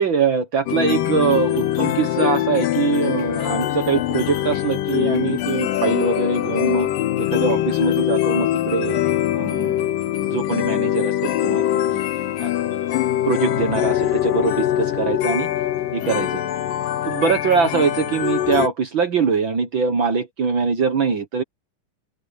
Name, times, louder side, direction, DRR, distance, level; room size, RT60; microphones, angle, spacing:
voice 1, 0.0-6.9 7.2-9.0 9.3-9.7 10.2-12.0 12.4-12.5 13.2-15.5 15.9-16.4 17.1-21.4, right 5 dB, 55° right, 1.4 m, -22 dB
sound 1, 0.7-18.7, left 12 dB, 80° left, 2.9 m, -23 dB
open air
omnidirectional pair, 4.0 m